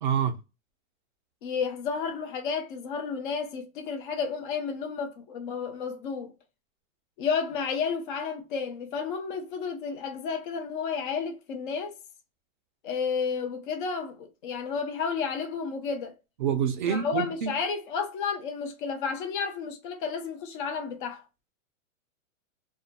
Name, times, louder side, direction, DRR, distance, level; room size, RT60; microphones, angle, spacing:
voice 1, 0.0-0.3 16.4-17.5, right 8 dB, 40° right, 0.4 m, -26 dB
voice 2, 1.4-6.3 7.2-12.0 12.8-16.1 16.9-21.2, left 5 dB, 40° left, 0.6 m, -31 dB
2.7 x 2.3 x 2.4 m
supercardioid pair, 165°, 41 cm